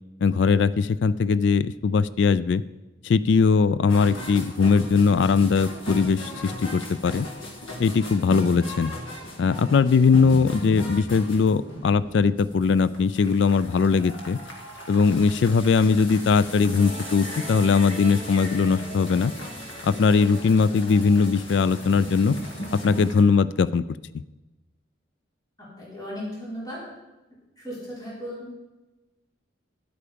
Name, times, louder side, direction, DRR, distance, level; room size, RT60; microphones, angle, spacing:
voice 1, 0.2-2.6 3.0-7.3 7.8-8.9 9.4-14.4 14.9-19.3 19.8-22.4 22.7-23.8, left 5 dB, 65° left, 17 dB, 0.3 m, -20 dB
sound 1, 3.9-23.2, left 1 dB, 90° left, 1.9 m, -37 dB
Musical instrument, 16.8-23.2, right 2 dB, 30° right, 0.8 m, -42 dB
voice 2, 25.6-26.8 27.6-28.6, equal, 20° left, -7 dB, 4.1 m, -36 dB
11.0 x 8.5 x 5.1 m, 1.1 s
head